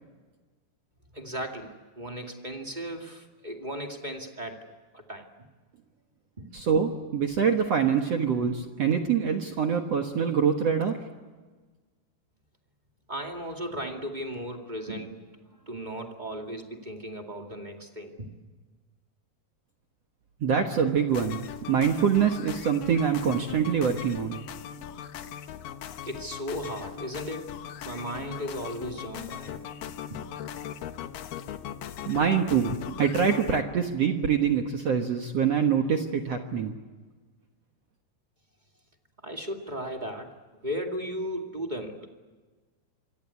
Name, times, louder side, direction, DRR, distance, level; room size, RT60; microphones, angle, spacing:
voice 1, 1.1-4.7 4.9-5.5 6.4-6.5 13.1-15.3 15.6-18.3 26.0-27.5 27.8-29.6 30.1-30.2 39.2-40.3 40.6-42.1, equal, 20° right, 2 dB, 1.3 m, -36 dB
voice 2, 6.5-11.0 20.4-24.4 32.1-36.7, right 7 dB, 60° right, 4 dB, 1.8 m, -25 dB
sound 1, 21.1-33.6, left 9 dB, 65° left, 2.5 m, -39 dB
27.0 x 24.5 x 8.4 m, 1.3 s
omnidirectional pair, 4.6 m